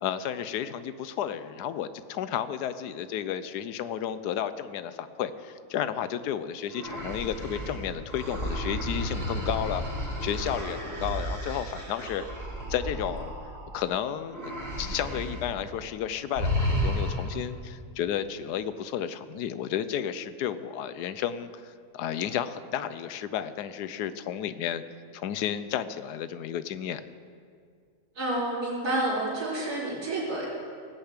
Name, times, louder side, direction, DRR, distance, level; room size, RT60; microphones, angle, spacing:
voice 1, 0.0-9.8 10.2-12.2 12.7-13.3 13.7-14.5 14.8-24.8 25.1-27.0, left 9 dB, 85° left, 13 dB, 1.2 m, -32 dB
sound 1, 6.7-13.9 14.3-15.5 15.8-16.0 16.3-17.5, equal, 50° right, 3.7 m, -32 dB
voice 2, 28.1-30.5, right 1 dB, 70° right, -7 dB, 4.3 m, -29 dB
18.5 x 6.8 x 8.1 m, 2.2 s
omnidirectional pair, 1.7 m